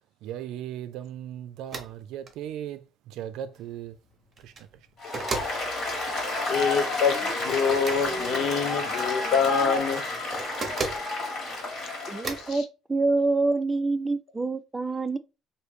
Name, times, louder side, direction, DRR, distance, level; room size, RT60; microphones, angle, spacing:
voice 1, 0.2-4.0 4.4-4.7, right 10 dB, 85° right, 0.4 m, -37 dB
sound 1, 1.7-1.9 2.3-2.4 4.3-4.7 5.1-5.6 7.7-8.0 10.3-11.1 12.2-12.5, right 4 dB, 35° right, 0.8 m, -33 dB
Dog, 3.6-3.8 4.1-4.2 4.4-5.1 5.8-6.0 6.3-6.4 6.6-6.7 6.8-9.8, left 1 dB, 30° left, 0.8 m, -41 dB
Applause, 5.0-12.5, left 2 dB, 50° left, 1.6 m, -31 dB
voice 2, 6.5-10.0 12.4-12.6, left 6 dB, 70° left, 0.6 m, -26 dB
voice 3, 12.1-12.6 12.9-15.2, right 3 dB, 15° right, 0.3 m, -26 dB
3.1 x 2.7 x 3.3 m
cardioid pair, 135°, 0 cm